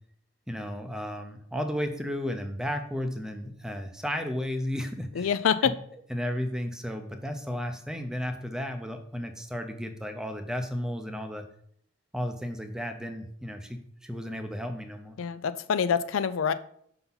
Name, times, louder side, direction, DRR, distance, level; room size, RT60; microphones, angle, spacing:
voice 1, 0.5-5.3 5.6-5.7 6.1-11.4 12.1-15.2, equal, 5° right, 6 dB, 0.5 m, -33 dB
voice 2, 5.2-5.7 15.2-16.5, left 7 dB, 85° left, 13 dB, 0.4 m, -26 dB
5.7 x 4.0 x 5.5 m, 0.67 s
head